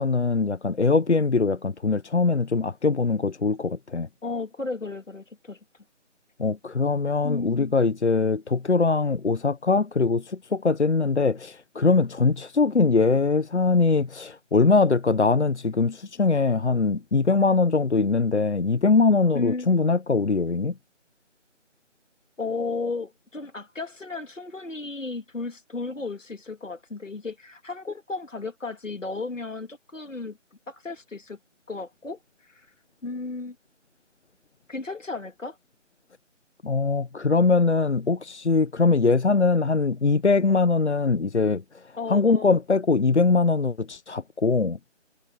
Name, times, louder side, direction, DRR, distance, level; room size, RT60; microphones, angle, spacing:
voice 1, 0.0-4.1 6.4-20.8 36.6-41.8 42.1-44.8, left 4 dB, 65° left, 1.0 m, -22 dB
voice 2, 4.2-5.6 7.2-7.7 19.3-20.0 22.4-30.4 30.7-31.4 31.7-32.2 32.5-32.7 33.0-33.6 34.7-35.6 42.0-42.6, left 3 dB, 90° left, 2.6 m, -34 dB
figure-of-eight pair, 175°, 37 cm